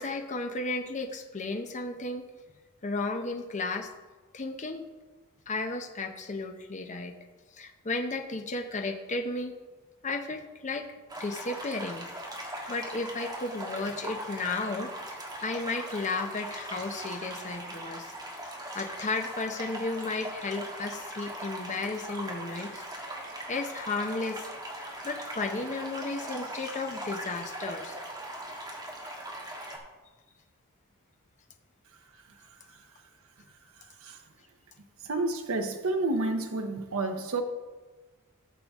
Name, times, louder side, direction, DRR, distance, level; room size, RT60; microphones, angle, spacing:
voice 1, 0.0-2.2 2.8-3.9 4.3-4.8 5.5-7.1 7.5-9.5 10.0-10.9 11.2-12.1 12.7-14.9 15.4-18.1 18.7-22.8 23.5-24.4 25.0-28.0, left 3 dB, 35° left, 0.7 m, -33 dB
sound 1, 11.1-29.8, right 1 dB, 20° right, 1.4 m, -40 dB
voice 2, 35.0-37.4, right 2 dB, 65° right, 0.8 m, -29 dB
13.5 x 6.7 x 3.5 m
head